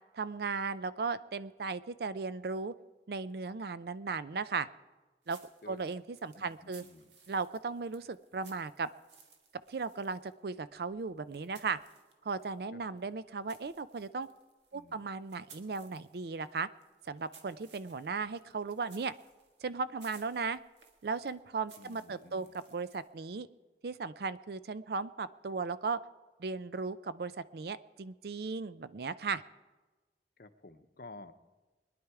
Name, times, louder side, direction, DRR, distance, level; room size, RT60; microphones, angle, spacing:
voice 1, 0.1-2.7 3.1-4.7 5.3-5.4 5.7-6.8 7.3-8.9 9.7-11.8 12.2-14.3 14.7-16.7 17.1-19.1 19.6-20.6 21.0-23.5 23.8-26.0 26.4-29.4, right 4 dB, 60° right, 15 dB, 0.4 m, -36 dB
sound 1, 5.2-12.6 13.0-23.2, right 5 dB, 90° right, 1.6 m, -61 dB
voice 2, 6.3-7.1 12.7-12.8 14.7-15.1 21.8-22.5 30.4-31.3, left 2 dB, 55° left, 9 dB, 0.8 m, -52 dB
22.0 x 10.5 x 4.7 m, 1.2 s
head